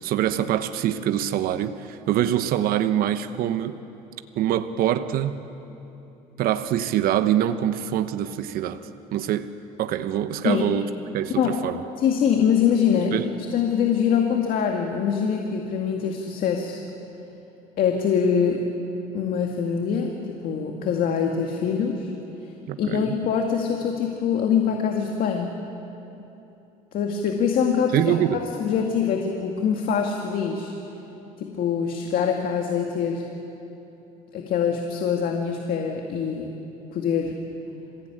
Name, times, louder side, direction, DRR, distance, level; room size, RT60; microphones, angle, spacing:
voice 1, 0.0-3.8 4.4-5.3 6.4-9.5 9.8-11.8 13.1-13.3 22.7-23.1 27.9-28.4, right 11 dB, 65° right, 10 dB, 1.0 m, -24 dB
voice 2, 12.0-13.2 13.5-16.8 17.8-18.6 19.1-22.1 22.8-25.5 26.9-30.7 31.4-33.2 34.3-36.5 36.9-37.4, left 7 dB, 60° left, 2 dB, 2.1 m, -24 dB
26.5 x 16.5 x 9.1 m, 3.0 s
cardioid pair, 105°, 16 cm